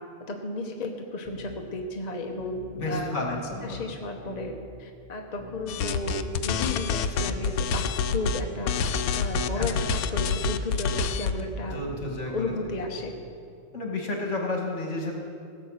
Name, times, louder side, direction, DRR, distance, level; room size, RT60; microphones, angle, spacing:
voice 1, 0.3-4.5 4.8-6.2 6.4-8.7 9.1-13.1, left 2 dB, 35° left, 2 dB, 0.9 m, -34 dB
sound 1, 1.3-1.6 2.4-3.1 3.5-3.9 4.3-4.6 5.4-6.1 6.5-6.8 7.3-7.6 8.4-9.1 9.5-9.8 10.3-10.6 11.4-12.1 12.5-12.8, left 1 dB, 25° right, 1.4 m, -43 dB
voice 2, 2.7-3.4 3.7-3.8 9.6-9.7 11.7-12.5 13.7-15.2, left 2 dB, 55° left, 0 dB, 2.2 m, -31 dB
sound 2, 5.7-8.4 8.7-11.4, left 5 dB, 85° left, 1.1 m, -27 dB
16.5 x 7.7 x 6.4 m, 2.5 s
omnidirectional pair, 1.5 m